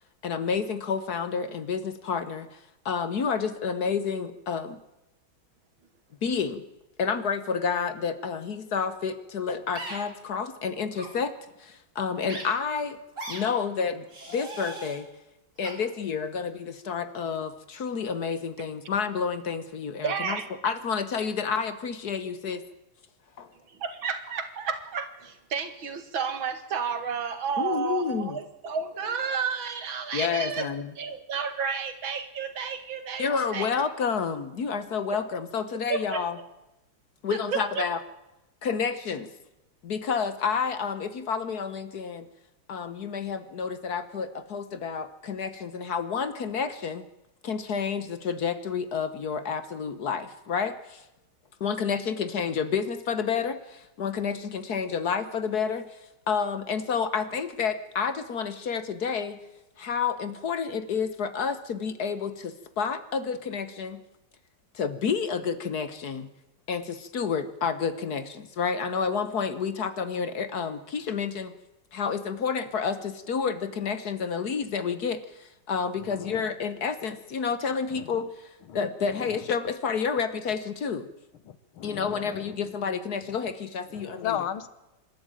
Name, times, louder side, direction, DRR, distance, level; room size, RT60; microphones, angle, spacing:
voice 1, 0.2-2.6 2.8-4.8 6.2-6.6 7.0-11.3 11.6-13.0 13.3-15.1 15.6-22.6 23.4-23.5 27.6-28.4 30.1-30.9 33.2-36.4 37.2-38.0 38.6-39.3 39.8-42.3 42.7-47.0 47.4-51.0 51.6-56.0 56.3-59.4 59.8-64.0 64.7-66.3 66.7-71.5 71.9-81.1 81.8-84.4, left 6 dB, 55° left, 12 dB, 1.5 m, -30 dB
sound 1, 9.8-10.0 10.9-11.1 12.3-12.4 13.2-13.4 14.1-15.0 15.6-15.7, right 2 dB, 35° right, 4.1 m, -38 dB
voice 2, 20.0-20.4 23.7-33.7 35.9-36.2 37.3-37.8, right 6 dB, 70° right, 9 dB, 2.6 m, -31 dB
voice 3, 76.0-76.4 77.9-78.1 78.7-78.8 79.1-79.3 81.5-82.6 83.9-84.7, left 10 dB, 80° left, 14 dB, 2.0 m, -35 dB
26.5 x 12.5 x 9.0 m, 0.96 s
omnidirectional pair, 2.2 m